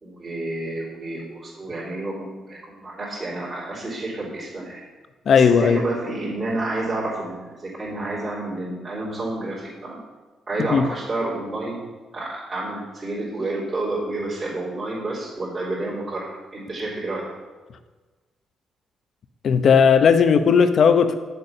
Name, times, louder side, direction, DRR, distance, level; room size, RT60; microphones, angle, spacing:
voice 1, 0.0-4.8 5.4-10.0 10.5-11.8 12.1-17.3, right 2 dB, 35° right, -8 dB, 3.3 m, -29 dB
voice 2, 5.3-5.8 10.6-10.9 19.4-21.1, left 6 dB, 55° left, 9 dB, 0.8 m, -16 dB
8.3 x 6.8 x 5.7 m, 1.3 s
cardioid pair, 90°, 0 cm